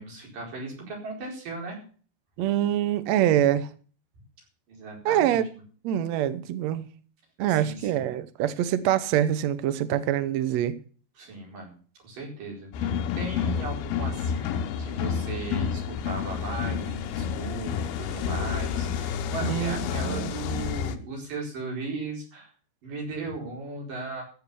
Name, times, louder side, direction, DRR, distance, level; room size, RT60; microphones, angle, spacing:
voice 1, 0.0-1.8 4.7-5.4 7.5-8.1 11.2-11.8 12.0-22.5 22.8-24.2, right 3 dB, 60° right, 6.2 m, -37 dB
voice 2, 2.4-3.7 5.0-5.5 5.8-6.9 7.4-10.7 19.4-20.3, right 11 dB, 80° right, 1.5 m, -25 dB
sound 1, 12.7-21.0, left 7 dB, 80° left, 2.9 m, -29 dB
15.5 x 7.0 x 6.9 m
omnidirectional pair, 4.3 m